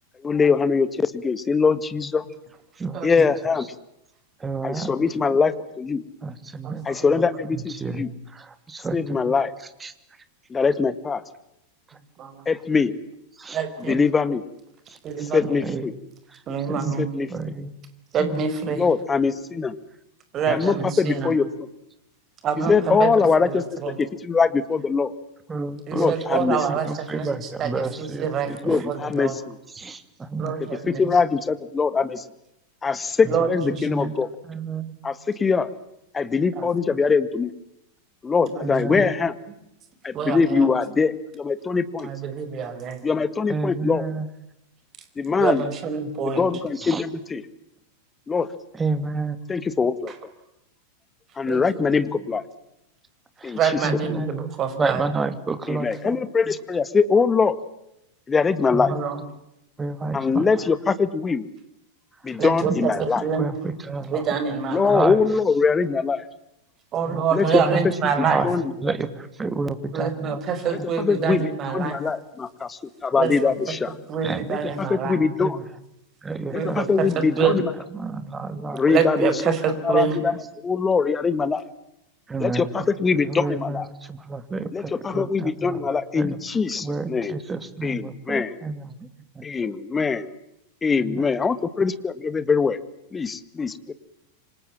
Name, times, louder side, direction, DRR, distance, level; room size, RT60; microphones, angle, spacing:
voice 1, 0.2-2.2 3.0-3.7 4.6-6.0 6.9-8.1 8.9-9.5 10.5-11.2 12.5-12.9 13.9-14.4 15.3-15.9 17.0-17.3 18.8-19.8 20.5-21.7 22.7-25.1 25.9-26.6 28.7-29.6 30.9-32.2 32.8-34.3 35.0-35.7 36.1-37.5 38.2-39.3 40.0-42.1 43.0-44.1 45.2-45.6 46.3-47.4 48.3-48.5 49.5-50.1 51.4-52.4 53.4-53.6 54.1-54.5 55.7-57.6 58.3-58.9 60.1-61.5 62.2-63.2 64.7-66.3 67.3-67.5 68.4-68.6 71.0-73.9 74.5-75.6 76.5-77.7 78.7-79.3 79.8-80.3 80.6-81.6 82.4-83.9 84.7-87.4 87.8-88.6 89.4-90.3 90.8-92.8 93.1-93.9, left 5 dB, 15° left, 14 dB, 1.8 m, -22 dB
voice 2, 2.8-3.3 4.4-4.9 6.2-7.2 7.5-8.0 8.3-9.3 9.8-9.9 13.4-13.6 15.2-15.3 15.6-15.9 16.3-16.4 16.7-17.7 18.2-18.8 20.5-20.9 22.6-23.3 25.5-26.2 26.6-28.8 29.7-30.6 30.9-31.1 33.2-33.4 33.7-34.1 34.5-34.9 38.6-39.0 43.5-44.3 46.8-47.0 48.7-49.4 53.4-53.6 53.8-54.3 54.8-56.2 56.5-56.6 58.7-59.0 59.8-60.5 62.6-64.2 64.7-65.2 67.0-68.5 68.8-70.4 70.8-70.9 74.2-74.8 75.4-75.6 76.2-77.1 77.4-77.5 77.9-78.8 82.3-82.8 83.1-85.9 86.1-86.4 86.7-89.1 89.3-89.4 91.0-91.3, right 3 dB, 15° right, 11 dB, 2.7 m, -30 dB
voice 3, 6.6-7.1 12.2-12.5 13.5-14.0 15.0-15.6 16.5-17.1 18.1-18.8 20.3-21.3 22.4-23.1 23.4-24.0 25.9-29.4 30.4-31.0 33.2-34.1 36.5-36.7 38.4-39.0 40.1-40.7 42.0-43.0 45.3-46.5 50.1-50.2 51.4-52.0 53.5-55.0 58.9-59.2 62.4-63.5 64.1-65.0 66.9-68.5 69.9-72.0 73.1-73.5 74.1-75.2 76.5-77.6 78.9-80.2, right 6 dB, 30° right, 10 dB, 5.1 m, -26 dB
28.0 x 25.5 x 7.3 m, 0.85 s
figure-of-eight pair, 90°, 0 cm